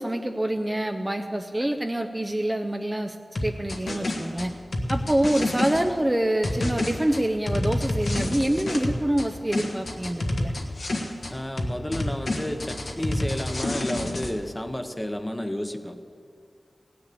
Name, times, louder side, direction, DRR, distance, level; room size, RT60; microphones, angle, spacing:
voice 1, 0.0-3.2 3.4-4.5 4.9-10.5, right 1 dB, 20° right, 5 dB, 0.7 m, -26 dB
sound 1, 3.3-5.8 6.4-9.3 9.5-11.3 11.6-14.3, left 1 dB, 70° left, 1.4 m, -28 dB
voice 2, 11.3-16.0, left 1 dB, 15° left, 7 dB, 1.0 m, -31 dB
17.0 x 6.9 x 8.5 m, 2.3 s
wide cardioid pair, 55°, 0 cm